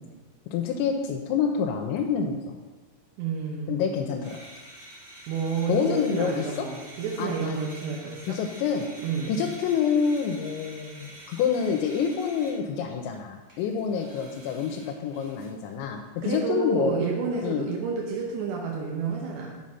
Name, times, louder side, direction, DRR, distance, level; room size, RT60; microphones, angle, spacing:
voice 1, 0.5-2.6 3.7-4.4 5.7-6.7 7.2-7.6 8.3-8.9 9.3-16.9 17.4-17.7, left 6 dB, 85° left, 2 dB, 2.9 m, -27 dB
voice 2, 3.2-3.8 5.3-8.4 9.0-9.3 16.2-19.5, right 5 dB, 80° right, -2 dB, 3.1 m, -30 dB
sound 1, 4.2-12.6 13.1-13.2 13.5-15.7, right 1 dB, 55° right, 1.3 m, -47 dB
7.3 x 6.4 x 5.5 m, 1.3 s
omnidirectional pair, 5.1 m